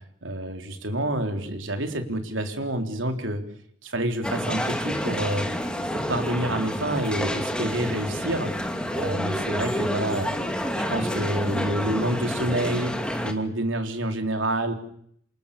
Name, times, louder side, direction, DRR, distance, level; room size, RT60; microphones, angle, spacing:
voice 1, 0.2-3.4 3.8-5.5 5.9-8.5 8.9-10.3 10.9-12.9 13.2-14.7, right 1 dB, 70° right, 5 dB, 4.0 m, -28 dB
sound 1, 4.2-13.3, equal, 5° left, 2.6 m, -29 dB
27.5 x 27.5 x 7.0 m, 0.68 s
head